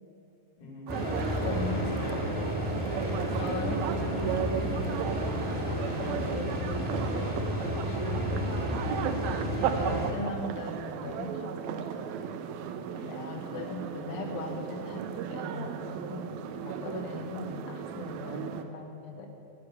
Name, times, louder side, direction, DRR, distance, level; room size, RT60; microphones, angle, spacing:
voice 1, 0.6-2.5 12.9-13.7 18.0-18.1, left 2 dB, 75° left, -5 dB, 4.1 m, -41 dB
sound 1, 0.9-10.1, equal, 5° right, 1.2 m, -32 dB
sound 2, 0.9-18.6, right 8 dB, 80° right, 1.8 m, -35 dB
voice 2, 1.4-2.0 3.4-5.1 5.9-8.5 9.6-11.9 13.1-19.3, left 2 dB, 60° left, 3 dB, 1.8 m, -39 dB
9.8 x 7.8 x 8.7 m, 2.6 s
omnidirectional pair, 3.4 m